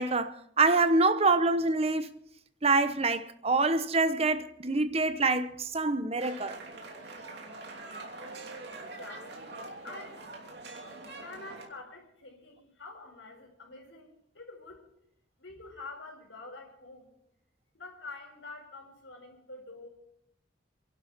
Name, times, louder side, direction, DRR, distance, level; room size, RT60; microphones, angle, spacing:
voice 1, 0.0-2.1 2.6-6.6, right 3 dB, 35° right, 0.9 m, -26 dB
sound 1, 6.2-11.7, right 2 dB, 60° right, 2.9 m, -44 dB
voice 2, 8.7-9.6 9.8-10.2 11.1-14.9 15.4-17.1 17.7-19.9, left 3 dB, 90° left, 4.6 m, -47 dB
27.5 x 12.0 x 4.2 m
head